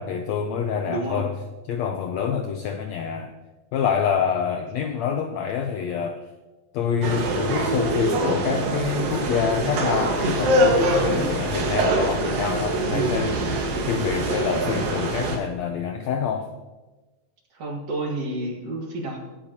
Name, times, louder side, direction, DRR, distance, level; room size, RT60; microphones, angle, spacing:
voice 1, 0.0-1.4 1.7-3.3 3.7-6.2 6.7-13.4 13.9-16.5, left 7 dB, 90° left, 6 dB, 1.5 m, -26 dB
voice 2, 0.9-1.2 11.1-11.5 12.9-13.2 17.5-19.2, right 2 dB, 55° right, -1 dB, 2.5 m, -30 dB
sound 1, 7.0-15.4, right 1 dB, 80° right, 3.4 m, -24 dB
23.0 x 8.7 x 2.9 m, 1.2 s
omnidirectional pair, 3.9 m